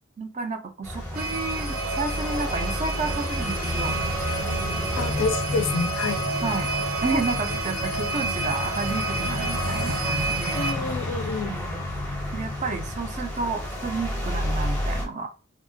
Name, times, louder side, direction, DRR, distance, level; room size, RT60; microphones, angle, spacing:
voice 1, 0.2-4.0 6.4-6.7 7.0-10.7 11.5-11.6 12.3-15.3, right 3 dB, 30° right, 0.3 m, -31 dB
sound 1, 0.8-15.0, left 1 dB, 10° left, 0.6 m, -30 dB
sound 2, 1.1-10.7, right 3 dB, 85° right, 0.8 m, -30 dB
voice 2, 4.9-6.3 10.5-11.5, left 4 dB, 60° left, 0.4 m, -28 dB
2.7 x 2.1 x 2.6 m
head